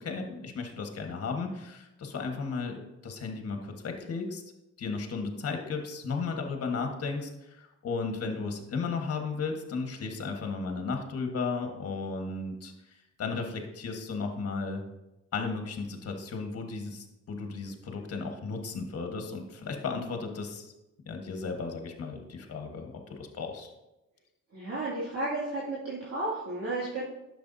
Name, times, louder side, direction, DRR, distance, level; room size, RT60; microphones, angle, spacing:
voice 1, 0.0-4.4 4.8-14.8 15.3-20.7 21.1-23.7, left 4 dB, 50° left, 4 dB, 1.5 m, -35 dB
voice 2, 24.5-27.0, right 2 dB, 55° right, -7 dB, 2.4 m, -33 dB
10.5 x 6.8 x 2.7 m, 0.95 s
cardioid pair, 90°, 30 cm